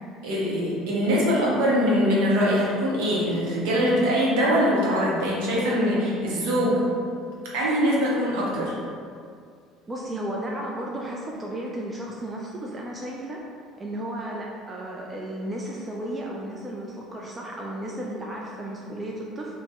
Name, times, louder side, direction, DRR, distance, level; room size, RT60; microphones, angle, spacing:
voice 1, 0.2-6.8 7.5-8.8, equal, 60° right, -5 dB, 0.6 m, -23 dB
voice 2, 9.9-13.4 13.8-19.6, right 1 dB, 20° right, -2 dB, 0.3 m, -34 dB
2.6 x 2.0 x 3.2 m, 2.2 s
figure-of-eight pair, 60°, 0 cm